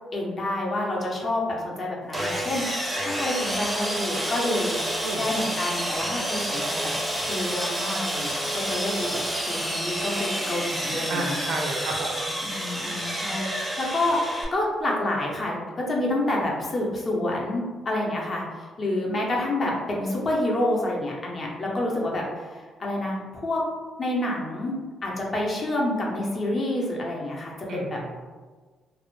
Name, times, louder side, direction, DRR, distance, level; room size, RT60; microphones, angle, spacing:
voice 1, 0.1-11.5 12.4-23.6 24.0-24.7 25.0-28.0, left 1 dB, 40° left, -2 dB, 0.6 m, -28 dB
Sawing, 2.1-14.4, right 1 dB, 10° right, 0.5 m, -29 dB
voice 2, 11.1-12.3 27.7-28.2, right 3 dB, 70° right, 2 dB, 0.3 m, -32 dB
2.0 x 2.0 x 3.0 m, 1.4 s
cardioid pair, 90°, 0 cm